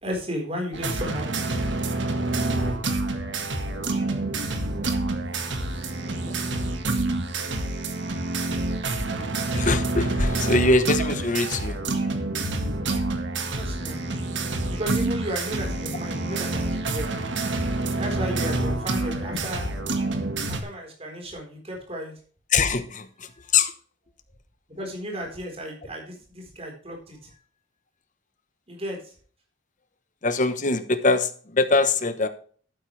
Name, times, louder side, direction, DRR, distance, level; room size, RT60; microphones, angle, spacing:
voice 1, 0.0-1.5 13.5-14.0 14.7-17.1 18.0-19.7 20.5-22.1 23.3-23.5 24.7-27.4 28.7-29.1, equal, 30° right, 4.1 m, -34 dB
sound 1, 0.7-20.6, right 2 dB, 65° right, 1.7 m, -27 dB
voice 2, 9.5-11.8 22.5-23.7 30.2-32.3, left 3 dB, 40° left, 1.0 m, -23 dB
12.0 x 9.1 x 3.3 m
head